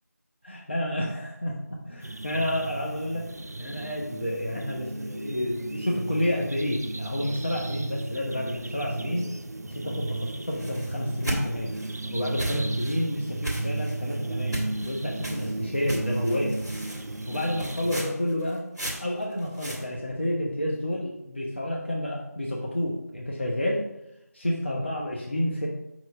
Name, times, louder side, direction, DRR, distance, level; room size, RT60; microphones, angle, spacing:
voice 1, 0.4-3.3 3.6-9.3 9.6-11.7 12.1-16.6 17.3-18.7 19.0-23.8 24.3-25.7, left 1 dB, 40° left, -3 dB, 0.8 m, -30 dB
sound 1, 2.0-18.0, right 2 dB, 70° right, 0.4 m, -34 dB
sound 2, 10.4-12.0 12.4-13.0 13.4-14.1 14.5-14.9 15.2-15.5 15.9-19.8, equal, 10° right, 1.1 m, -35 dB
5.9 x 3.4 x 5.9 m, 0.90 s
figure-of-eight pair, 175°, 9 cm